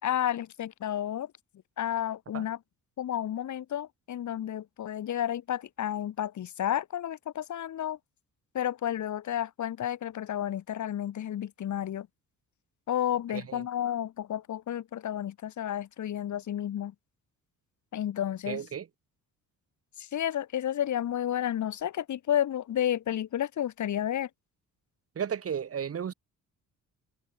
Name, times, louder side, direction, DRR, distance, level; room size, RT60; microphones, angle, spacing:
voice 1, 0.0-1.3 1.8-2.6 3.0-8.0 8.5-12.1 12.9-16.9 17.9-18.6 20.0-24.3, left 10 dB, 60° left, 4.1 m, -31 dB
voice 2, 13.3-13.6 18.5-18.9 25.2-26.1, right 8 dB, 45° right, 5.2 m, -34 dB
cardioid pair, 130°, 33 cm